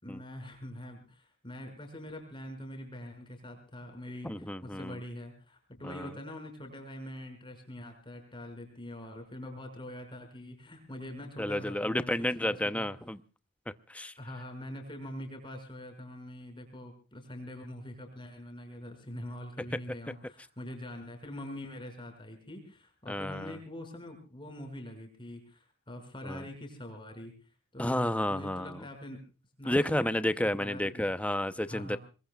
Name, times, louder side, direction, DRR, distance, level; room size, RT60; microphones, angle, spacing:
voice 1, 0.0-12.1 12.4-12.9 14.2-29.2 29.6-31.0 31.7-32.0, left 1 dB, 25° left, 6.1 m, -44 dB
voice 2, 4.2-5.0 5.8-6.1 11.4-13.2 13.9-14.1 23.1-23.6 26.2-26.4 27.8-28.8 29.6-32.0, left 1 dB, 5° left, 0.8 m, -31 dB
26.5 x 21.5 x 2.4 m
head